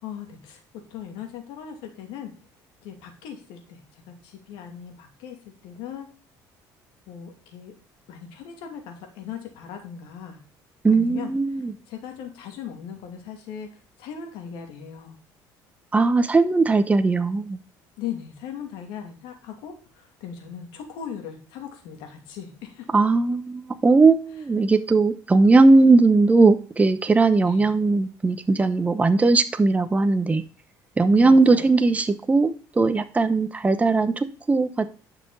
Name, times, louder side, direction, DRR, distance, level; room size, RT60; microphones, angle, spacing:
voice 1, 0.0-0.6 0.9-2.3 2.8-5.4 5.6-6.1 7.1-7.7 8.1-10.4 10.9-11.3 11.9-13.7 14.0-15.2 18.0-22.9 27.4-27.6 31.1-31.9, left 8 dB, 85° left, 4 dB, 2.5 m, -38 dB
voice 2, 10.8-11.7 15.9-17.6 22.9-30.4 31.0-34.9, right 3 dB, 15° right, 10 dB, 0.8 m, -19 dB
10.5 x 5.9 x 4.1 m, 0.37 s
cardioid pair, 110°, 8 cm